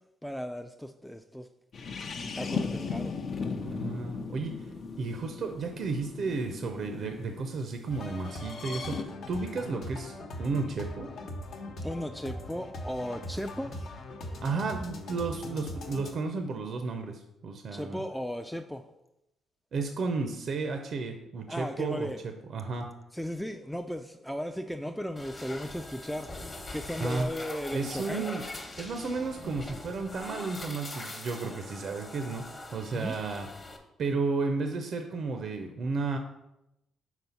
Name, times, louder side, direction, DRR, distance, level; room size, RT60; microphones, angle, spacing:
voice 1, 0.2-1.5 2.1-3.1 11.8-14.0 17.7-18.8 21.5-22.2 23.1-26.3 26.7-28.3 32.9-33.2, equal, ahead, 0.3 m, -36 dB
sound 1, 1.7-7.4 8.3-9.0, left 5 dB, 55° left, 0.5 m, -37 dB
voice 2, 3.6-4.6 5.0-11.1 14.4-18.0 19.7-22.9 27.0-27.3 27.7-28.4 28.8-33.5 34.0-36.2, right 4 dB, 60° right, 0.5 m, -33 dB
sound 2, 7.9-16.1, left 1 dB, 70° left, 1.0 m, -40 dB
sound 3, 25.2-33.8, left 2 dB, 30° left, 1.0 m, -42 dB
4.4 x 4.1 x 5.6 m
cardioid pair, 90°, 0 cm